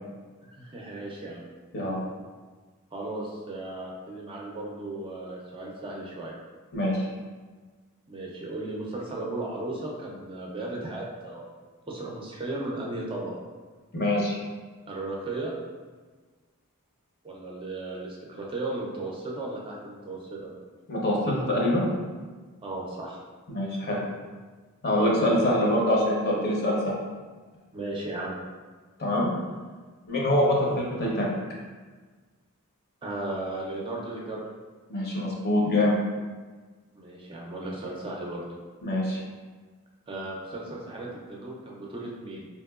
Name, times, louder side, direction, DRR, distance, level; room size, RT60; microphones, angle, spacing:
voice 1, 0.5-1.5 2.9-6.3 8.1-11.5 11.9-13.4 14.9-15.5 17.2-20.5 22.6-23.2 25.0-25.4 27.7-28.4 33.0-34.4 37.0-38.4 40.1-42.5, right 2 dB, 25° right, -2 dB, 0.4 m, -35 dB
voice 2, 6.7-7.1 13.9-14.4 20.9-21.8 23.5-24.0 24.8-26.9 29.0-29.3 30.1-31.3 34.9-36.0 38.8-39.2, left 1 dB, 45° left, -3 dB, 0.7 m, -24 dB
3.6 x 2.9 x 2.3 m, 1.4 s
head